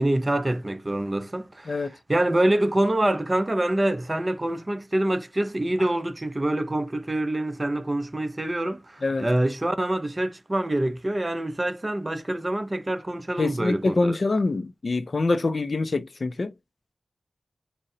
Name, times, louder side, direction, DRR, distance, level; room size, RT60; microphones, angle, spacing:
voice 1, 0.0-14.2, right 1 dB, 25° right, 0.6 m, -26 dB
voice 2, 13.4-16.5, left 3 dB, 55° left, 0.4 m, -25 dB
3.9 x 2.1 x 3.8 m
wide cardioid pair, 80°, 0 cm